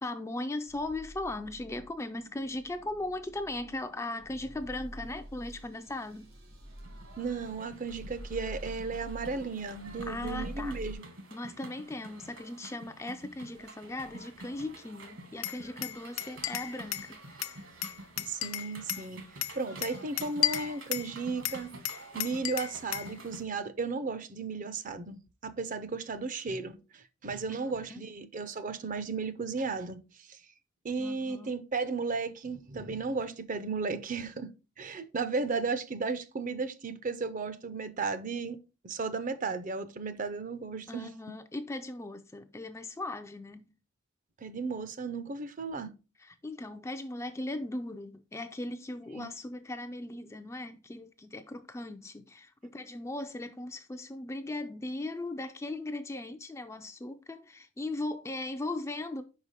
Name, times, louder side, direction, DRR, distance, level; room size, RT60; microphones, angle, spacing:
voice 1, 0.0-6.3 10.1-10.8 11.3-17.7 27.5-28.0 31.0-31.6 40.9-43.7 46.2-59.2, left 2 dB, 15° left, 0.3 m, -38 dB
sound 1, 0.7-10.9, right 1 dB, 90° right, 2.2 m, -46 dB
sound 2, 6.7-23.4, right 2 dB, 65° right, 1.4 m, -48 dB
voice 2, 7.2-11.1 18.3-19.2 19.5-30.4 30.8-34.5 34.8-38.6 38.8-41.1 44.4-45.9 49.1-49.3, right 4 dB, 40° right, 0.5 m, -35 dB
Glass, 15.4-17.1 17.4-19.1 19.4-21.1 21.5-23.1, left 14 dB, 75° left, 0.4 m, -34 dB
5.4 x 4.8 x 4.0 m
head